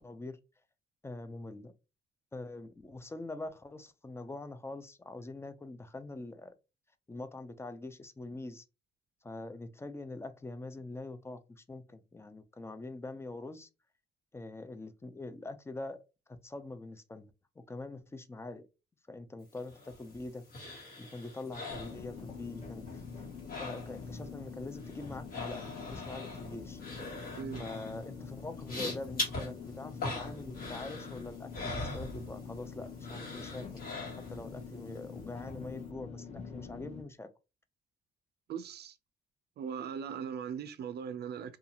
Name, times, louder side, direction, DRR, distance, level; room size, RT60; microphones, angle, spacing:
voice 1, 0.0-0.4 1.0-1.7 2.3-6.5 7.1-8.6 9.2-13.7 14.3-16.0 16.3-18.7 19.1-20.4 21.0-23.3 23.6-26.8 27.6-33.9 34.3-37.3, left 2 dB, 15° left, 0.3 m, -44 dB
sound 1, 19.6-22.6 22.9-24.2 24.5-32.7 33.0-34.5 34.9-35.0, left 2 dB, 45° left, 1.3 m, -42 dB
sound 2, 21.7-37.0, left 5 dB, 30° left, 0.8 m, -45 dB
voice 2, 38.5-39.0 39.6-41.6, right 7 dB, 55° right, 0.4 m, -39 dB
2.5 x 2.3 x 2.8 m
cardioid pair, 90°, 20 cm